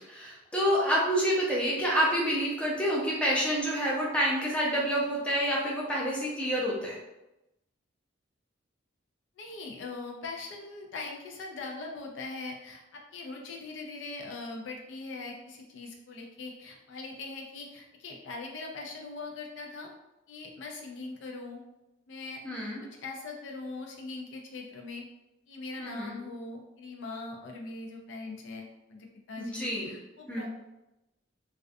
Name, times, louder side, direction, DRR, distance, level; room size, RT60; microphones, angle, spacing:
voice 1, 0.1-7.0 22.4-22.8 25.8-26.1 29.4-29.9 30.3-30.5, equal, 5° left, -5 dB, 0.5 m, -28 dB
voice 2, 9.4-19.9 20.3-21.6 22.1-25.0 25.5-30.5, left 3 dB, 65° left, 1 dB, 0.4 m, -41 dB
2.3 x 2.2 x 2.5 m, 0.95 s
head